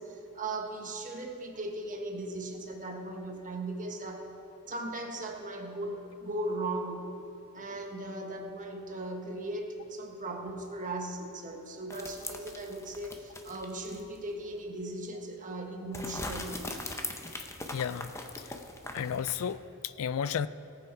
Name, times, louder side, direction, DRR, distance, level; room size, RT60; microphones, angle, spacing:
voice 1, 0.0-4.3 4.7-7.1 7.5-16.6, right 2 dB, 35° right, 2 dB, 1.3 m, -38 dB
sound 1, 11.9-14.2 14.5-14.6 15.9-19.6, left 2 dB, 15° left, 0.7 m, -41 dB
voice 2, 17.7-18.1 18.4-18.5 18.9-20.5, left 8 dB, 65° left, 15 dB, 0.3 m, -33 dB
18.0 x 7.1 x 4.8 m, 2.8 s
head